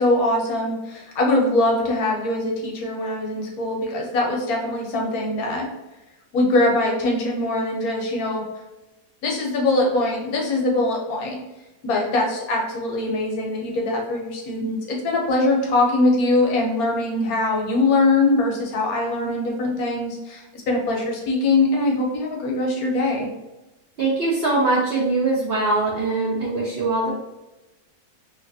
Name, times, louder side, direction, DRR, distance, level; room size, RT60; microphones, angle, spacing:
voice 1, 0.0-5.7 6.3-8.4 9.2-11.4 11.8-23.3, left 2 dB, 70° left, -1 dB, 1.1 m, -22 dB
voice 2, 24.0-27.1, right 3 dB, 65° right, -6 dB, 0.6 m, -22 dB
2.8 x 2.5 x 2.6 m, 1.0 s
omnidirectional pair, 1.7 m